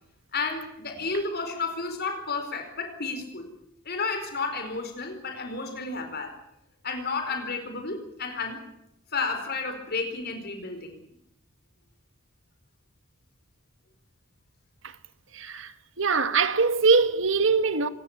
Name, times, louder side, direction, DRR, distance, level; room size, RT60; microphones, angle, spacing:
voice 1, 0.3-3.5 3.8-6.3 6.8-8.7 9.1-11.0, left 4 dB, 50° left, 4.7 m, -32 dB
voice 2, 15.3-17.9, right 4 dB, 70° right, 1.8 m, -23 dB
26.0 x 20.0 x 7.4 m
head